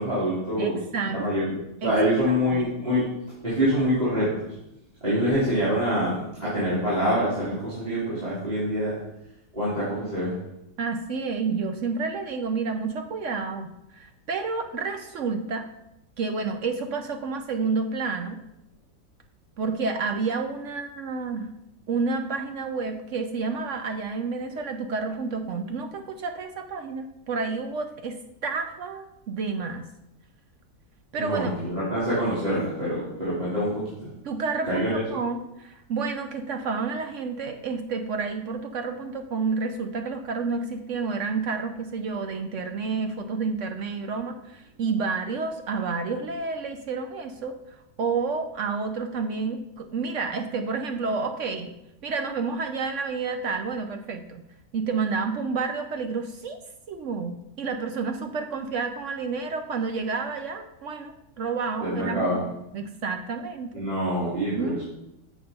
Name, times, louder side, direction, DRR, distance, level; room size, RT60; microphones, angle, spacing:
voice 1, 0.0-0.8 1.1-3.0 3.4-4.3 5.0-8.9 9.5-10.3 31.2-34.1 34.6-35.0 61.8-62.5 63.7-64.8, equal, 25° right, -10 dB, 2.7 m, -25 dB
voice 2, 0.6-1.2 1.8-1.9 2.3-2.6 10.8-15.7 16.2-18.4 19.6-21.5 21.9-29.9 31.1-31.5 34.2-47.5 48.0-51.7 52.0-54.4 54.7-56.6 56.9-62.4 62.7-63.7 64.6-64.8, right 4 dB, 65° right, 6 dB, 0.8 m, -30 dB
7.3 x 4.8 x 5.3 m, 0.86 s
omnidirectional pair, 1.8 m